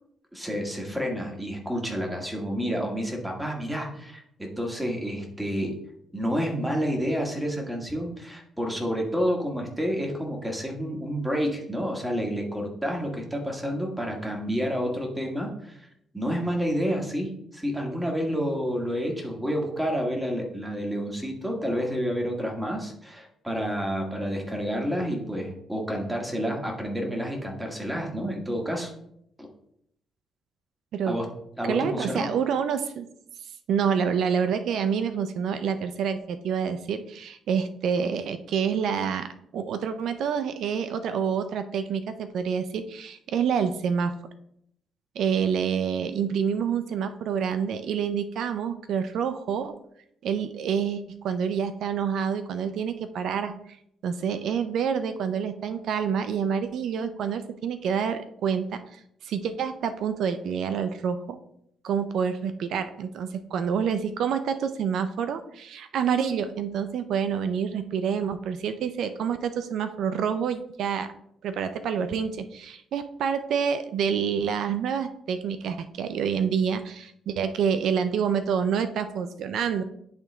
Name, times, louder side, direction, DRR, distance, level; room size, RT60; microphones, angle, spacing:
voice 1, 0.3-5.8 6.1-15.9 16.1-28.9 31.1-31.3 31.6-32.3, equal, 10° right, 0 dB, 1.9 m, -29 dB
voice 2, 31.7-33.1 33.7-39.3 39.5-44.1 45.2-49.7 50.2-53.5 54.0-61.4 61.8-71.1 71.4-79.8, right 7 dB, 75° right, 10 dB, 0.5 m, -27 dB
10.5 x 3.7 x 3.4 m, 0.73 s
cardioid pair, 90°, 0 cm